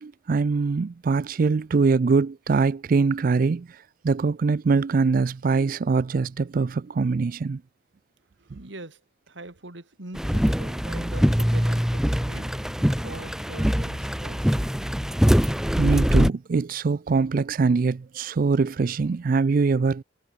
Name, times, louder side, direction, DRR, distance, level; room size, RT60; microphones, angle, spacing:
voice 1, 0.0-3.7 4.0-7.6 8.5-8.6 15.8-20.0, right 4 dB, 45° right, 0.4 m, -23 dB
voice 2, 8.4-9.0 9.3-12.5 12.8-14.6, right 2 dB, 70° right, 2.6 m, -42 dB
sound 1, 10.2-16.3, equal, 5° right, 1.2 m, -23 dB
head